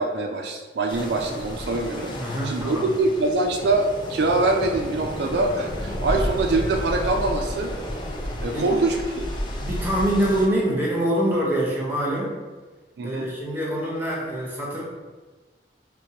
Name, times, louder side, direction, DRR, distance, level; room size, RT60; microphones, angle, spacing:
voice 1, 0.0-2.2 2.4-7.7 8.4-9.3 13.0-13.3, right 2 dB, 70° right, 2 dB, 0.3 m, -24 dB
sound 1, 0.9-10.5, left 1 dB, 25° left, 0.3 m, -32 dB
voice 2, 2.1-2.9 8.5-8.7 9.6-12.4 13.0-14.8, right 1 dB, 10° right, -4 dB, 0.7 m, -25 dB
4.3 x 2.2 x 2.8 m, 1.3 s
head